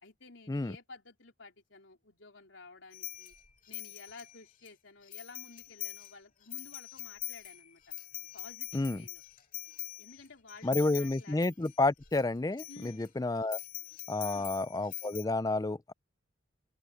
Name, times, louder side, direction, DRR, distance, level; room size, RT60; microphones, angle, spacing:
voice 1, 0.0-3.3 3.7-7.9 8.3-9.2 10.0-11.4 12.7-13.1 14.2-14.5, left 3 dB, 80° left, 3.7 m, -53 dB
sound 1, 2.9-4.7 5.1-6.1 6.4-12.2 12.5-13.1 13.5-15.2, left 15 dB, 45° left, 2.1 m, -43 dB
voice 2, 8.7-9.1 10.6-13.6 14.1-15.9, left 2 dB, 20° left, 0.4 m, -30 dB
open air
head